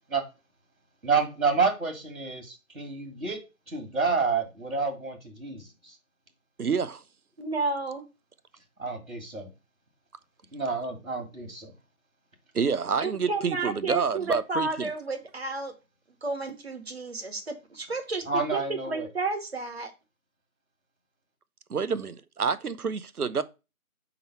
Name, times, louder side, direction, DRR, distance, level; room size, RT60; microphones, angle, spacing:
voice 1, 1.0-3.4 3.7-6.0 8.8-9.5 10.5-11.7 18.2-19.1, right 4 dB, 65° right, 1.9 m, -29 dB
voice 2, 6.6-7.0 12.5-14.9 21.7-23.4, right 6 dB, 90° right, 0.7 m, -28 dB
voice 3, 7.4-8.0 13.0-15.7 16.2-18.6 18.9-19.9, right 3 dB, 45° right, 1.1 m, -32 dB
4.4 x 3.9 x 5.6 m
figure-of-eight pair, 165°, 43 cm